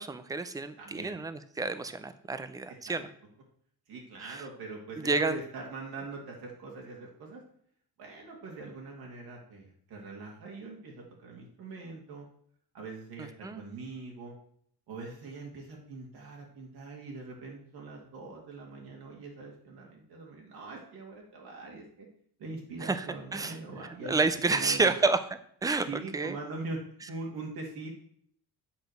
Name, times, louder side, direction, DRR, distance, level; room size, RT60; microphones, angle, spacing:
voice 1, 0.0-3.1 4.3-4.4 5.0-5.4 13.4-13.6 22.8-23.1 23.3-23.6 24.1-25.2 25.6-25.9 26.1-26.4, right 3 dB, 10° right, 12 dB, 0.4 m, -29 dB
voice 2, 0.8-1.1 2.9-3.0 3.9-7.4 8.0-12.2 12.7-14.3 14.9-22.1 22.4-24.2 24.5-24.9 25.7-26.8 27.1-27.9, right 3 dB, 70° right, -1 dB, 2.3 m, -42 dB
8.5 x 4.9 x 6.3 m, 0.64 s
cardioid pair, 165°, 38 cm